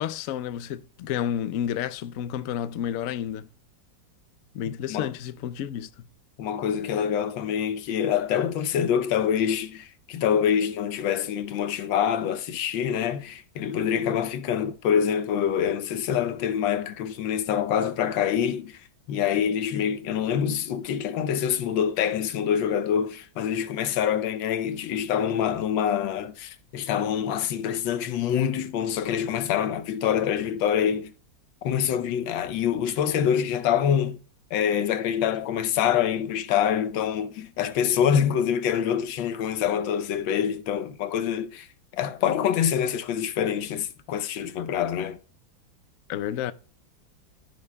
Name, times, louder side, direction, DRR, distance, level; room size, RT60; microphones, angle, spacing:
voice 1, 0.0-3.5 4.5-6.1 46.1-46.5, left 10 dB, 70° left, 0.7 m, -30 dB
voice 2, 4.7-5.1 6.4-31.1 31.6-34.2 34.5-41.7 41.9-45.2, left 8 dB, 90° left, 1.5 m, -26 dB
13.5 x 10.5 x 2.3 m
omnidirectional pair, 2.0 m